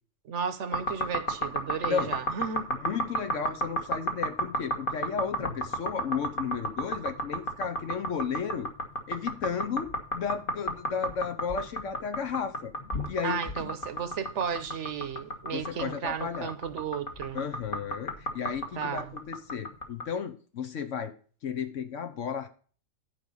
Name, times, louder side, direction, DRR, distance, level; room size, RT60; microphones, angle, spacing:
voice 1, 0.2-2.7 13.2-17.4 18.8-19.1, right 7 dB, 70° right, 1.1 m, -34 dB
sound 1, 0.7-20.0, right 1 dB, 45° left, 1.6 m, -32 dB
voice 2, 2.8-8.7 9.1-12.7 13.1-13.7 15.5-16.5 17.3-21.1 21.4-22.5, left 7 dB, 75° left, 1.2 m, -33 dB
11.0 x 5.2 x 5.3 m
omnidirectional pair, 1.3 m